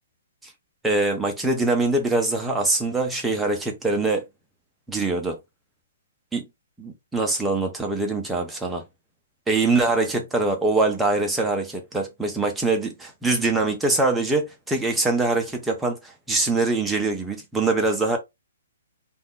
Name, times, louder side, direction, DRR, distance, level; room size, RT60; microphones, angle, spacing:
voice 1, 0.8-4.2 4.9-5.4 6.3-6.5 6.8-8.8 9.5-18.2, right 3 dB, 5° right, 0.4 m, -23 dB
2.5 x 2.2 x 3.5 m
hypercardioid pair, 180°, 0 cm